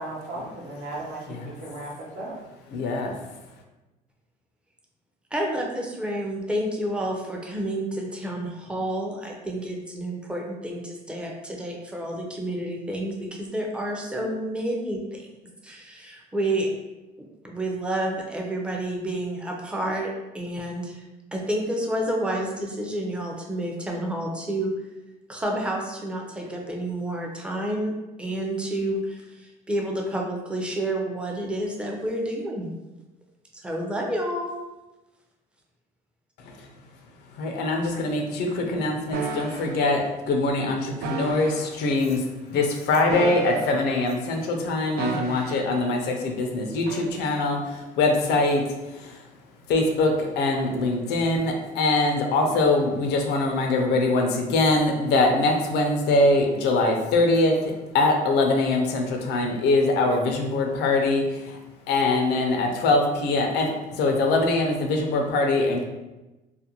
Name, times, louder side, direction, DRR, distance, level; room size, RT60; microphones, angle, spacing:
voice 1, 0.0-2.3, right 1 dB, 60° right, -4 dB, 0.9 m, -36 dB
voice 2, 2.7-3.2 37.4-49.2 49.7-61.6 61.9-65.8, left 2 dB, 80° left, 3 dB, 0.5 m, -23 dB
voice 3, 5.3-15.3 15.6-16.7 17.2-21.0 21.3-24.7 25.3-27.9 28.2-32.7 33.5-34.5, right 1 dB, 5° right, -1 dB, 0.5 m, -29 dB
sound 1, 39.1-39.7 41.0-41.7 43.0-44.0 45.0-45.7 46.9-47.1, right 4 dB, 75° right, 0.4 m, -32 dB
2.4 x 2.2 x 2.8 m, 1.1 s
cardioid pair, 110°, 17 cm